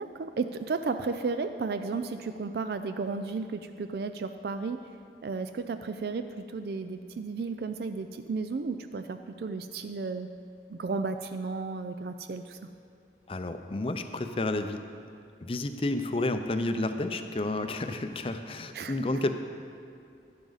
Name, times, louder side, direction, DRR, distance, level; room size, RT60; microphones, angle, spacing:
voice 1, 0.0-5.0 5.2-10.3 10.7-12.6 18.7-19.0, right 4 dB, 60° right, 9 dB, 0.4 m, -33 dB
voice 2, 13.3-14.8 15.4-19.3, left 2 dB, 30° left, 8 dB, 0.5 m, -31 dB
12.0 x 10.5 x 4.0 m, 2.4 s
head